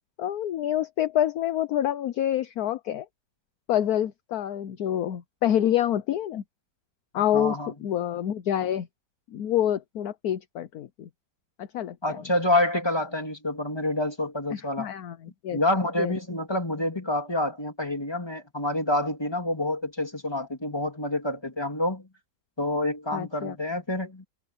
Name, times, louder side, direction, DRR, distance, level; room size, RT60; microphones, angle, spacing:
voice 1, 0.2-3.1 3.7-6.4 7.1-8.9 9.3-11.1 11.6-12.2 14.5-15.6 16.0-16.2 23.1-23.6, left 11 dB, 60° left, 1.1 m, -27 dB
voice 2, 7.1-7.7 12.0-14.9 15.5-22.1 22.6-24.2, left 1 dB, 15° left, 3.3 m, -27 dB
omnidirectional pair, 2.0 m